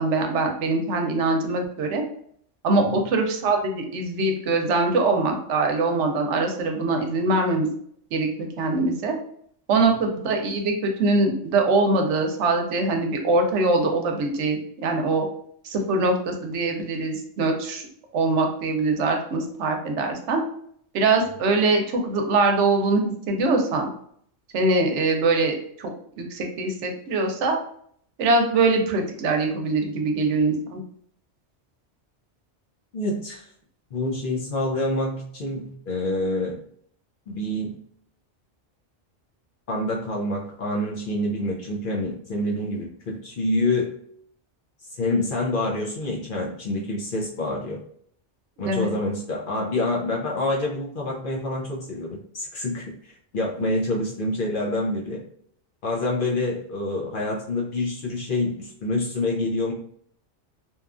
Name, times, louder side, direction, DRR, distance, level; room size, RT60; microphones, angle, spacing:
voice 1, 0.0-2.0 2.6-7.7 8.1-9.2 9.7-15.3 15.6-17.8 18.1-20.4 20.9-23.9 24.5-25.9 26.2-27.6 28.2-30.8 48.6-48.9, right 3 dB, 75° right, 4 dB, 0.9 m, -23 dB
voice 2, 32.9-33.5 33.9-36.6 37.3-37.7 39.7-43.9 44.9-47.8 48.6-52.1 52.3-52.8 53.3-55.2 55.8-59.7, left 2 dB, 55° left, -2 dB, 0.6 m, -27 dB
2.9 x 2.3 x 2.4 m, 0.64 s
omnidirectional pair, 1.2 m